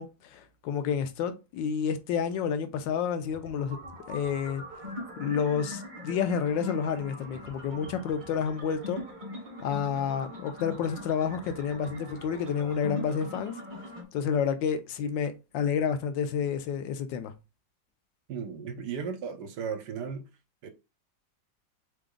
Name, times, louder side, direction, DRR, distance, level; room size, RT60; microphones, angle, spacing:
voice 1, 0.0-3.8 4.1-4.6 5.2-9.0 9.6-13.6 14.1-17.3, left 7 dB, 80° left, 1.3 m, -30 dB
sound 1, 3.2-14.0, left 1 dB, 30° right, 1.2 m, -42 dB
voice 2, 18.3-20.3 20.6-20.7, right 6 dB, 70° right, 1.2 m, -35 dB
3.8 x 3.4 x 3.8 m
omnidirectional pair, 2.0 m